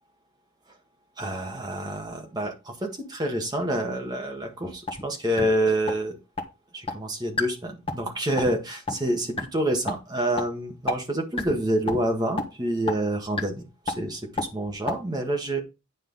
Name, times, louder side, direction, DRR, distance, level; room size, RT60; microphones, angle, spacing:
voice 1, 1.2-6.2 6.7-15.6, right 1 dB, 20° right, 2 dB, 1.6 m, -27 dB
sound 1, 4.9-5.0 5.4-5.5 5.9-6.0 6.4-6.5 6.9-7.0 7.4-7.5 7.9-8.1 8.4-8.5 8.9-9.0 9.4-9.5 9.9-10.0 10.4-10.5 10.9-11.0 11.4-11.6 11.9-12.0 12.4-12.5 12.9-13.0 13.4-13.5 13.9-14.0 14.4-14.5 14.9-15.0, left 3 dB, 25° left, 1.4 m, -27 dB
9.4 x 5.6 x 4.1 m, 0.27 s
head